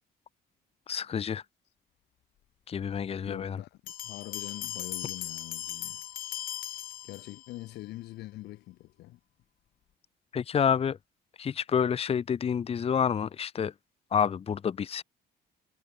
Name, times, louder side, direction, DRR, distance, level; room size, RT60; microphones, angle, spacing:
voice 1, 0.9-1.4 2.7-3.6 10.3-11.0 11.4-13.7 14.1-15.0, left 7 dB, 35° left, 1.2 m, -28 dB
voice 2, 3.3-6.0 7.0-9.2, left 17 dB, 80° left, 1.9 m, -44 dB
sound 1, 3.9-7.6, left 13 dB, 60° left, 0.7 m, -38 dB
cardioid pair, 110°, 17 cm